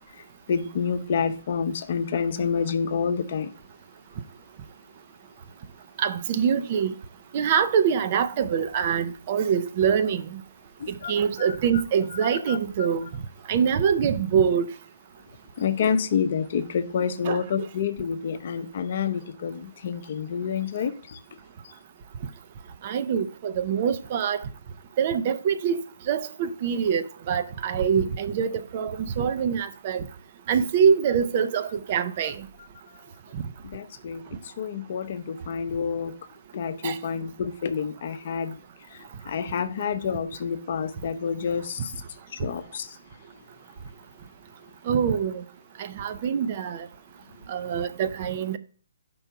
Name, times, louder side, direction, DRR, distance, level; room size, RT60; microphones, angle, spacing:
voice 1, 0.5-3.5 10.8-11.1 11.4-11.5 12.2-12.6 15.6-21.2 33.7-36.1 36.5-38.6 38.9-41.9 42.3-43.0, left 6 dB, 45° left, 0.7 m, -28 dB
voice 2, 6.0-6.9 7.3-10.4 11.1-13.1 13.5-14.7 17.2-17.7 22.8-24.5 25.0-25.8 26.1-30.0 30.5-32.4 33.3-33.4 36.8-37.0 44.9-45.4 45.8-46.9 47.5-48.6, right 7 dB, 40° right, 0.6 m, -24 dB
5.4 x 4.5 x 5.8 m
figure-of-eight pair, 130°, 0 cm